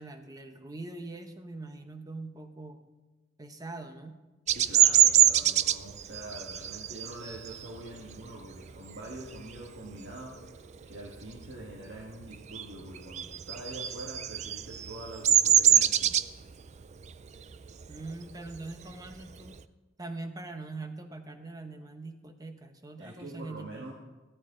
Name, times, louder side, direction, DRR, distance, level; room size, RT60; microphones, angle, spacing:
voice 1, 0.0-2.8 3.4-4.2 17.9-19.5 20.0-23.9, right 2 dB, 20° right, 7 dB, 0.9 m, -42 dB
Bird vocalization bird call bird song, 4.5-9.7 10.1-10.4 10.7-12.0 12.2-19.6, right 11 dB, 35° right, 0.4 m, -25 dB
voice 2, 4.5-10.5 10.8-16.2 23.0-23.9, right 1 dB, 60° right, -3 dB, 1.7 m, -44 dB
14.5 x 14.0 x 3.8 m, 1.2 s
head